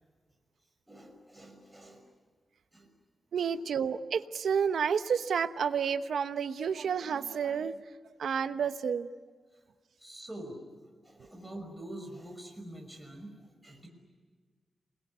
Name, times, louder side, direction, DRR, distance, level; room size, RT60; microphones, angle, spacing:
voice 1, 0.9-2.0 2.7-2.9 3.4-3.5 10.0-10.6 11.0-13.9, right 1 dB, 5° right, 2 dB, 5.8 m, -46 dB
voice 2, 3.3-7.8 8.2-9.1, right 7 dB, 85° right, 11 dB, 1.0 m, -30 dB
28.5 x 21.5 x 9.6 m, 1.5 s
wide cardioid pair, 110°, 0 cm